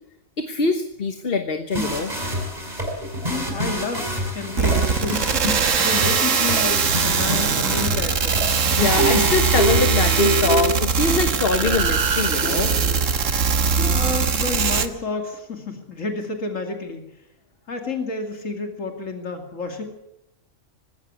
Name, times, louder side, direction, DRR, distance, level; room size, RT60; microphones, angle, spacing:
voice 1, 0.4-2.1 8.8-12.7, left 4 dB, 50° left, 8 dB, 1.5 m, -23 dB
sound 1, 1.7-10.7, equal, 30° right, 6.0 m, -28 dB
voice 2, 3.2-5.3 5.8-8.5 13.9-17.1 17.7-19.8, left 3 dB, 75° left, 4 dB, 2.8 m, -30 dB
High electric shok Schlimmer Stromschlag, 4.6-14.9, right 5 dB, 75° right, 1.6 m, -21 dB
sound 2, 9.0-12.0 12.4-13.3 13.8-14.1, right 3 dB, 60° right, 4.9 m, -26 dB
20.0 x 17.0 x 8.4 m, 0.82 s
omnidirectional pair, 1.3 m